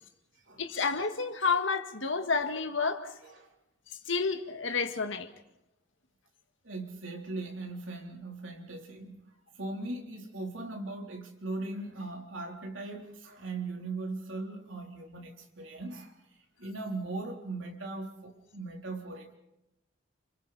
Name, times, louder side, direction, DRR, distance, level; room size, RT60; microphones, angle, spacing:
voice 1, 0.6-3.1 3.9-5.3, left 4 dB, 75° left, 1.9 m, -30 dB
voice 2, 6.6-9.2 9.6-16.1 16.6-19.3, right 2 dB, 75° right, 3.7 m, -39 dB
30.0 x 28.0 x 4.3 m
head